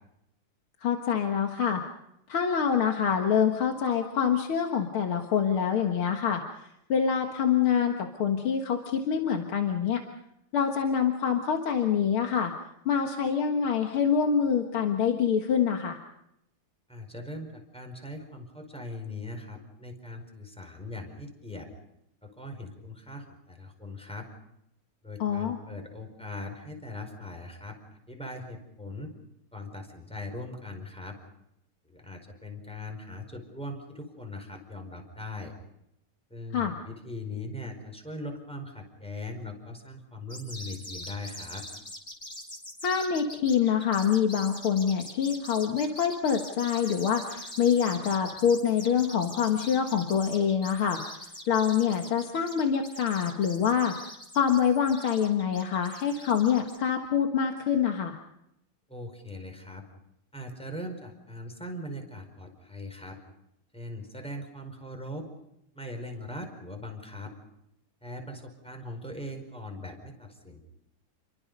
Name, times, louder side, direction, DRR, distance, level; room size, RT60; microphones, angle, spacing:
voice 1, 0.8-1.8 2.3-10.0 10.5-12.5 12.9-16.0 25.2-25.6 36.5-36.7 42.8-53.9 54.3-58.2, left 7 dB, 70° left, 4 dB, 2.4 m, -26 dB
voice 2, 16.9-21.7 22.2-24.3 25.0-29.1 29.5-31.2 31.8-35.5 36.3-41.7 58.9-59.8 60.3-63.2 63.7-65.3 65.7-67.3 68.0-70.6, left 1 dB, ahead, 5 dB, 4.7 m, -40 dB
sound 1, 40.3-56.8, left 1 dB, 25° left, 4.7 m, -43 dB
30.0 x 23.5 x 5.4 m, 0.79 s
omnidirectional pair, 2.4 m